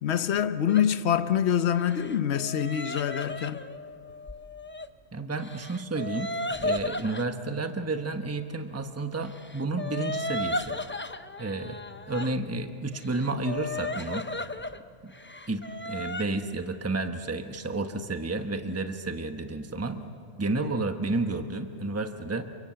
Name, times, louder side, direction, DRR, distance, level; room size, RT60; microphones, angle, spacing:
voice 1, 0.0-3.6, left 9 dB, 60° left, 1.1 m, -25 dB
sound 1, 0.7-0.9 1.8-4.9 5.4-7.3 9.3-12.3 12.9-14.8 15.1-16.2, left 1 dB, 20° left, 0.3 m, -35 dB
voice 2, 5.1-6.3 6.6-10.8 11.4-11.8 12.1-14.3 15.0-15.1 15.5-22.4, right 2 dB, 15° right, 1.0 m, -31 dB
29.0 x 24.0 x 7.7 m
omnidirectional pair, 1.3 m